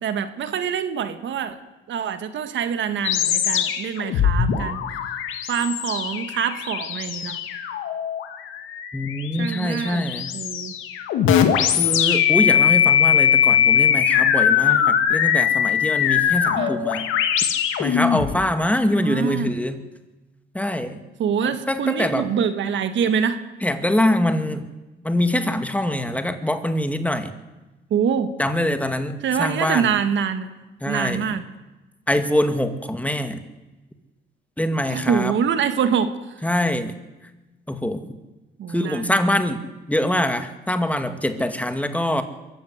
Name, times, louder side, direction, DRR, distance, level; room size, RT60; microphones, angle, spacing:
voice 1, 0.0-1.6 1.9-4.8 5.5-7.4 9.4-10.7 16.6-16.7 19.0-19.5 21.2-23.4 27.9-28.3 29.2-30.5 30.9-31.5 34.9-36.1 38.6-39.4, right 7 dB, 70° right, 10 dB, 1.8 m, -25 dB
sound 1, 3.0-18.3, left 9 dB, 90° left, 2.2 m, -21 dB
voice 2, 8.9-10.3 11.8-17.1 17.8-19.8 20.5-21.0 21.7-22.3 23.6-24.6 25.0-27.3 28.4-30.0 30.8-31.4 32.1-33.4 34.6-35.3 36.4-36.9 37.7-38.0 38.7-39.6 39.9-42.2, left 1 dB, 5° left, 8 dB, 2.2 m, -24 dB
24.0 x 14.5 x 8.1 m, 1.1 s
cardioid pair, 90°, 20 cm